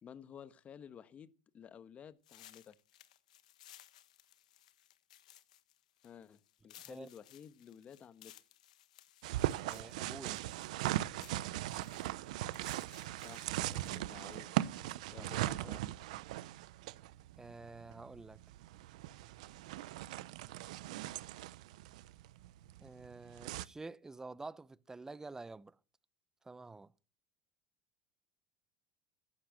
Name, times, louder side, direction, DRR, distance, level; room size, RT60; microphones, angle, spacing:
voice 1, 0.0-2.8 6.0-8.4 13.2-14.6 15.1-15.9, left 8 dB, 35° left, 1.3 m, -54 dB
sound 1, 2.2-14.3, left 13 dB, 90° left, 1.3 m, -61 dB
voice 2, 6.8-7.1 9.6-10.4 14.9-15.3 15.6-15.8 17.4-18.4 22.8-25.8 26.4-26.9, right 3 dB, 15° right, 0.7 m, -49 dB
sound 2, 9.2-23.7, right 15 dB, 80° right, 0.8 m, -39 dB
14.5 x 11.5 x 7.6 m
hypercardioid pair, 90°, 4 cm